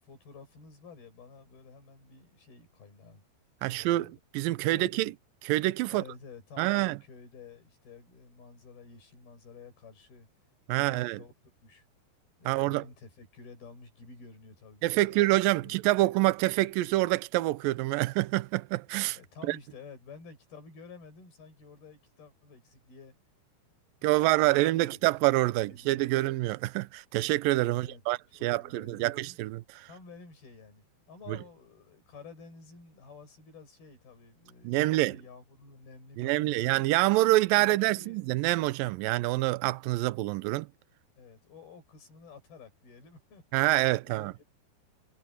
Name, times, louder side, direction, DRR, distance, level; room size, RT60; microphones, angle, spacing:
voice 1, 0.0-3.2 3.7-4.1 4.7-5.1 5.9-10.3 10.7-11.3 11.6-11.9 12.4-16.1 19.1-23.1 24.2-25.0 25.6-26.3 27.7-28.0 28.3-29.4 29.9-36.8 37.5-38.4 41.2-43.4 44.1-44.4, left 4 dB, 60° left, 8.7 m, -51 dB
voice 2, 3.6-5.1 5.4-6.0 6.6-7.0 10.7-11.2 12.5-12.8 14.8-19.2 19.5-19.6 24.0-29.9 31.3-31.4 34.6-35.2 36.2-40.7 43.5-44.3, right 18 dB, 85° right, 2.0 m, -26 dB
omnidirectional pair, 5.0 m